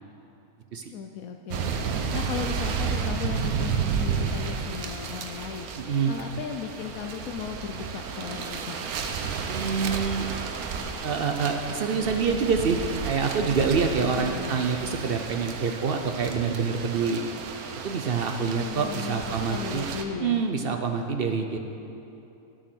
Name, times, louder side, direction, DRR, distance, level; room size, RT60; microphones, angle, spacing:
voice 1, 0.9-1.7 2.1-5.7 6.0-8.8 14.0-14.6 18.2-20.5, left 8 dB, 75° left, 5 dB, 1.0 m, -36 dB
sound 1, 1.5-20.0, right 6 dB, 80° right, 1.3 m, -32 dB
voice 2, 5.8-6.2 9.5-10.3 11.0-17.2 17.8-19.9 20.2-21.6, right 5 dB, 60° right, 5 dB, 0.6 m, -26 dB
12.5 x 7.6 x 6.1 m, 2.9 s
omnidirectional pair, 1.5 m